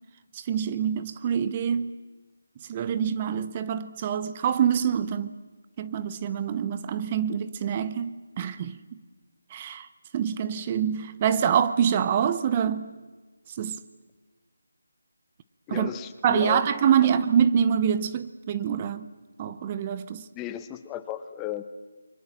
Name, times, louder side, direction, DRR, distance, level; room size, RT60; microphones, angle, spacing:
voice 1, 0.3-1.9 2.7-5.4 5.8-8.8 9.5-9.9 10.1-12.9 13.6-13.8 15.7-15.9 16.2-19.1 19.4-20.2, right 8 dB, 25° right, 0.9 m, -25 dB
voice 2, 15.7-16.6 20.3-21.6, left 12 dB, 15° left, 0.9 m, -34 dB
29.5 x 23.5 x 7.4 m
figure-of-eight pair, 165°, 0 cm